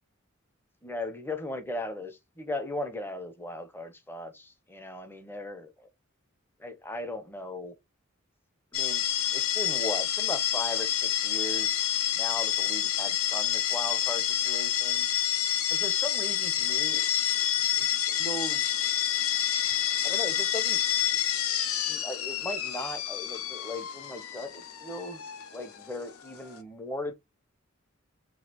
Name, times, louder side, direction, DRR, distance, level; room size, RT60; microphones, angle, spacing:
voice 1, 0.8-5.9 6.6-7.7 8.7-9.0 9.3-11.9 12.1-15.1 15.7-17.0 17.4-17.9 18.2-18.8 20.0-20.9 21.9-27.1, left 1 dB, 10° left, 0.7 m, -38 dB
sound 1, 8.7-26.6, left 11 dB, 85° left, 0.7 m, -28 dB
6.3 x 2.4 x 2.9 m
head